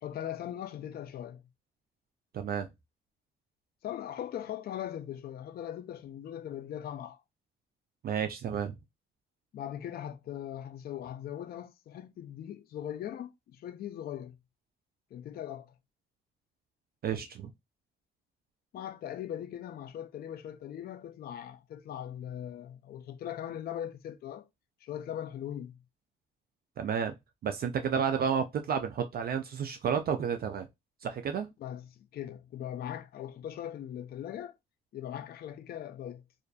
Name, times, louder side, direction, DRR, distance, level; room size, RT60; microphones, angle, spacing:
voice 1, 0.0-1.4 3.8-7.2 9.5-14.4 15.1-15.7 18.7-24.5 24.8-25.8 31.6-34.5 34.9-36.2, left 10 dB, 50° left, 0.4 m, -40 dB
voice 2, 2.3-2.7 8.0-8.7 17.0-17.5 26.8-27.1 27.4-30.7 31.0-31.5, right 7 dB, 50° right, 0.4 m, -31 dB
2.5 x 2.3 x 2.2 m
cardioid pair, 90°, 20 cm